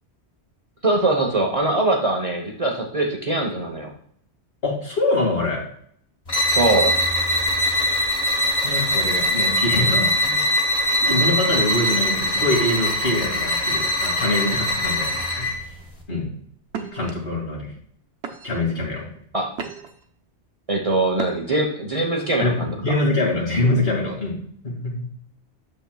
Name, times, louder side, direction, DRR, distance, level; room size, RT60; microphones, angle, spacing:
voice 1, 0.8-3.9 6.5-6.9 19.3-19.5 20.7-22.8, right 2 dB, 35° right, 0 dB, 1.0 m, -22 dB
voice 2, 4.6-5.6 8.6-10.4 11.0-15.6 16.1-16.3 16.9-17.7 18.4-19.1 22.4-24.4 24.6-25.1, left 2 dB, 60° left, -2 dB, 2.4 m, -24 dB
sound 1, 6.3-15.6, left 1 dB, 30° left, 1.3 m, -22 dB
sound 2, 15.9-16.1 16.7-17.1 17.8-17.9 18.2-18.7 19.2-20.0 21.1-21.7, right 6 dB, 80° right, 1.1 m, -35 dB
8.5 x 7.1 x 2.3 m, 0.63 s
omnidirectional pair, 1.1 m